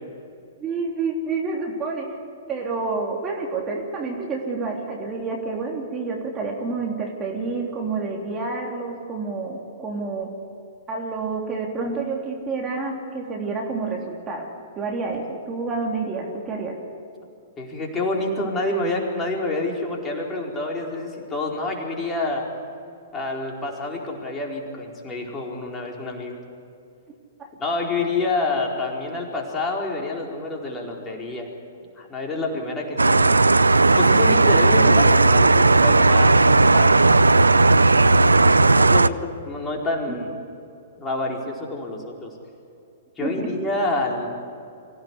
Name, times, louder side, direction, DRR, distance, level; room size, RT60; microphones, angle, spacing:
voice 1, 0.6-2.2 2.5-10.3 10.9-14.5 14.7-16.7 27.4-27.5 43.2-43.5, right 4 dB, 20° right, -1 dB, 3.4 m, -28 dB
voice 2, 17.6-22.5 23.1-26.4 27.6-31.5 32.0-33.4 34.0-36.9 38.1-40.3 41.0-42.3 43.2-44.3, left 2 dB, 15° left, -1 dB, 4.6 m, -28 dB
sound 1, 33.0-39.1, right 3 dB, 85° right, 0.6 m, -15 dB
25.0 x 16.5 x 9.9 m, 2.6 s
figure-of-eight pair, 115°, 0 cm